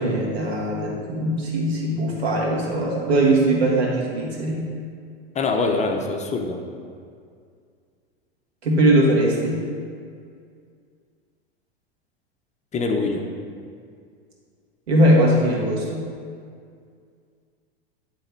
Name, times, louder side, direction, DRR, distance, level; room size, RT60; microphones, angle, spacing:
voice 1, 0.0-4.6 8.6-9.6 14.9-16.0, right 1 dB, 80° right, -3 dB, 1.7 m, -20 dB
voice 2, 5.3-6.6 12.7-13.2, left 3 dB, 20° left, 3 dB, 0.7 m, -23 dB
9.8 x 3.4 x 4.5 m, 2.2 s
hypercardioid pair, 95°, 31 cm